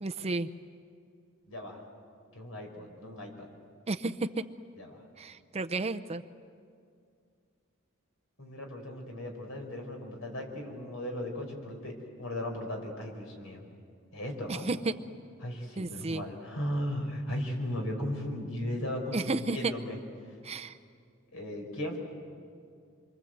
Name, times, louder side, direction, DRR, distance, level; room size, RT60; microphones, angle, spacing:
voice 1, 0.0-0.5 3.9-4.4 5.2-6.2 14.5-14.9 15.8-16.2 19.1-19.7 20.4-20.8, right 3 dB, 30° right, 9 dB, 0.6 m, -32 dB
voice 2, 1.5-1.8 2.3-3.5 4.8-5.0 8.4-13.6 14.1-14.7 15.4-20.0 21.3-22.0, left 1 dB, 75° left, 2 dB, 5.2 m, -36 dB
27.5 x 24.0 x 7.9 m, 2.3 s
head